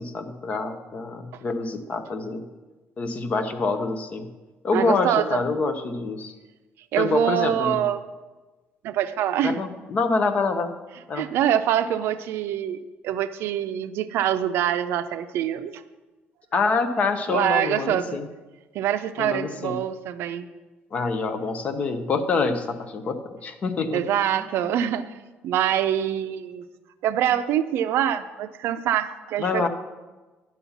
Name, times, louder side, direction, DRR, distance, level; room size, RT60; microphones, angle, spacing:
voice 1, 0.0-2.4 3.0-4.3 4.6-6.3 7.0-7.8 9.4-10.7 11.1-11.3 16.5-18.3 19.2-19.8 20.9-24.0 29.4-29.7, left 4 dB, 30° left, 8 dB, 0.7 m, -26 dB
voice 2, 4.7-5.4 6.9-8.0 8.8-9.6 11.1-12.8 13.0-15.8 17.3-18.2 18.7-20.5 23.9-25.1 25.4-26.6 27.0-29.7, right 10 dB, 65° right, 11 dB, 0.5 m, -25 dB
10.5 x 5.6 x 7.1 m, 1.2 s
cardioid pair, 165°, 4 cm